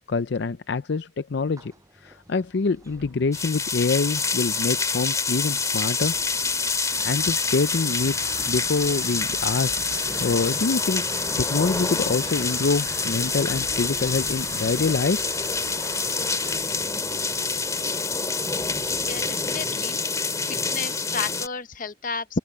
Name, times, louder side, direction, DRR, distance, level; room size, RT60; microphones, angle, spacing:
voice 1, 0.1-1.7 2.0-6.2 6.9-9.8 10.2-15.2, left 4 dB, 70° left, 0.5 m, -25 dB
sound 1, 1.6-19.6, right 1 dB, 20° right, 7.6 m, -46 dB
sound 2, 2.7-19.3, right 3 dB, 65° right, 7.6 m, -43 dB
sound 3, 3.3-21.5, left 4 dB, 20° left, 2.2 m, -27 dB
voice 2, 19.1-20.0 20.4-22.4, left 4 dB, 50° left, 1.0 m, -32 dB
open air
head